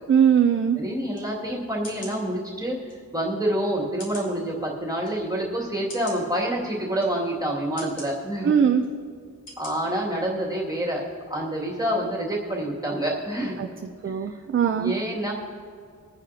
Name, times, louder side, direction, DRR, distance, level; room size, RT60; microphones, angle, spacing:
voice 1, 0.1-0.8 8.4-8.8 13.6-13.7 14.0-15.0, right 8 dB, 40° right, 6 dB, 0.4 m, -20 dB
voice 2, 0.8-2.8 3.1-8.5 9.6-11.0 11.3-13.6 14.0-14.1 14.7-15.3, right 1 dB, 10° right, -4 dB, 2.1 m, -27 dB
sound 1, 1.1-1.3 1.8-2.2 2.9-3.0 4.0-4.3 5.0-5.1 5.9-6.2 7.0-7.1 7.8-8.1 8.8-8.9 9.5-9.7 10.1-10.2, left 1 dB, 65° left, 3.0 m, -41 dB
22.0 x 9.2 x 2.8 m, 2.2 s
wide cardioid pair, 175°, 33 cm